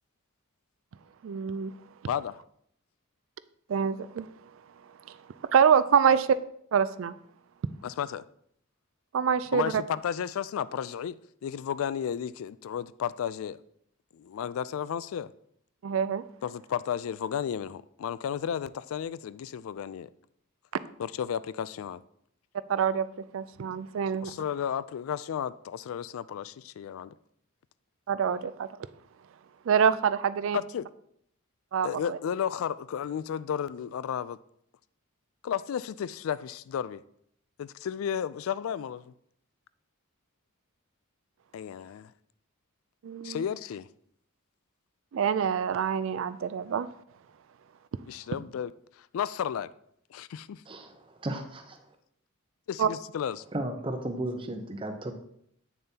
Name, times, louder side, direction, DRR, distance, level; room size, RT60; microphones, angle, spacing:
voice 1, 1.2-1.7 3.7-4.3 5.5-6.4 6.7-7.1 9.1-9.8 15.8-16.2 22.7-24.3 28.1-28.7 29.7-30.6 31.7-32.2 43.0-43.4 45.1-46.9 52.8-52.9, right 7 dB, 65° right, 0.3 m, -25 dB
voice 2, 2.1-2.4 7.8-8.2 9.5-13.6 14.1-15.3 16.4-20.1 21.0-22.0 24.2-27.2 30.5-30.9 31.8-34.4 35.4-37.0 37.6-39.1 41.5-42.1 43.2-43.9 48.1-48.7 49.0-49.7 50.1-50.6 52.7-53.4, left 8 dB, 75° left, 0.3 m, -33 dB
voice 3, 50.7-51.9 53.5-55.1, right 1 dB, 25° right, 0.7 m, -35 dB
8.7 x 6.8 x 2.8 m
head